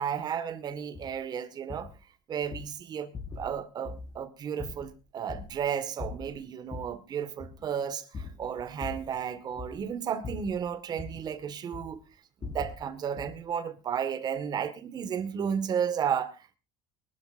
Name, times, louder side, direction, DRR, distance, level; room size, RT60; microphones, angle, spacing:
voice 1, 0.0-1.9 2.3-12.0 12.4-16.6, right 8 dB, 40° right, 1.9 m, -33 dB
sound 1, 0.9-1.2 1.7-2.0 2.4-2.7 3.1-3.6 3.8-4.2 4.6-5.7 6.0-7.0 7.4-7.7 8.1-9.2 9.5-9.9 10.2-11.3 11.7-12.0 12.4-12.8 13.2-13.4, left 4 dB, 35° left, 5.4 m, -41 dB
23.5 x 12.5 x 2.7 m
cardioid pair, 120°, 10 cm